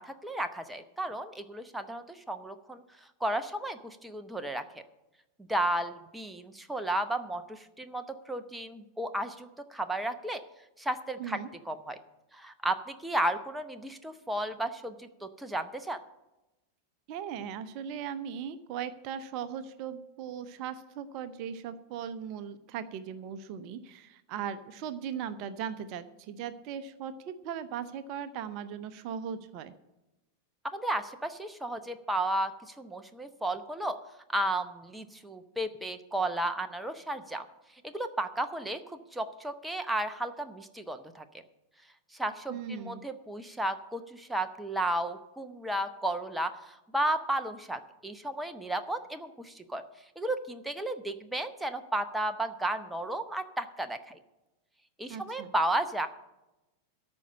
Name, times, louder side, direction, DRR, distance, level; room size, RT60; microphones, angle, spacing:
voice 1, 0.0-2.8 3.2-4.7 5.5-10.4 10.8-11.4 11.6-12.0 12.3-16.0 30.7-34.0 34.3-37.4 37.8-41.2 42.1-49.8 50.2-54.2 55.0-56.1, right 1 dB, 5° right, 8 dB, 0.7 m, -33 dB
voice 2, 17.1-29.7 42.5-43.0 55.1-55.5, right 8 dB, 40° right, 12 dB, 0.7 m, -38 dB
13.5 x 5.3 x 8.5 m, 0.98 s
figure-of-eight pair, 90°, 0 cm